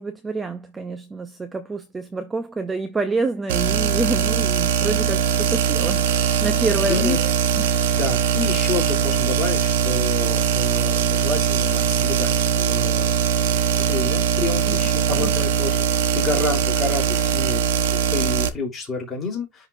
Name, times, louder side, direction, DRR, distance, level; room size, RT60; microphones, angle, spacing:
voice 1, 0.0-7.7 14.7-15.5, right 3 dB, 10° right, 0.5 m, -28 dB
sound 1, 3.5-18.5, right 8 dB, 80° right, 0.9 m, -21 dB
voice 2, 6.9-7.2 7.9-13.1 13.4-17.6 17.9-19.7, left 4 dB, 15° left, 3.3 m, -29 dB
10.5 x 3.9 x 2.5 m
supercardioid pair, 165°, 0 cm